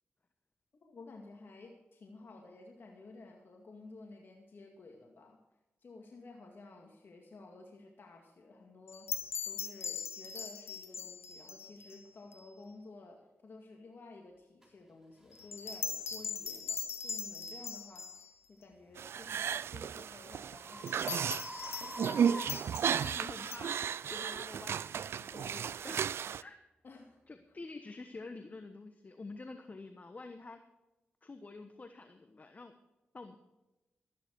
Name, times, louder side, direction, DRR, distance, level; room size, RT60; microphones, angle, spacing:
voice 1, 0.7-5.4 5.8-21.0 26.8-27.2 27.5-27.6, left 3 dB, 60° left, 1 dB, 2.1 m, -53 dB
sound 1, 8.9-12.0 12.3-12.4 15.3-18.3 20.9-22.2 22.5-23.6, left 6 dB, 85° left, 1.2 m, -41 dB
sound 2, 14.6-14.7 15.3-15.5 16.1-16.3 18.9-23.4, equal, 10° right, 3.9 m, -47 dB
sound 3, 19.0-26.4, right 8 dB, 75° right, 0.3 m, -34 dB
voice 2, 22.0-22.5 23.0-23.8 24.1-26.1 26.4-26.6 27.3-30.6 31.2-32.7 33.1-33.4, left 3 dB, 40° left, 8 dB, 1.1 m, -48 dB
13.5 x 12.0 x 4.7 m, 1.0 s
cardioid pair, 55°, 4 cm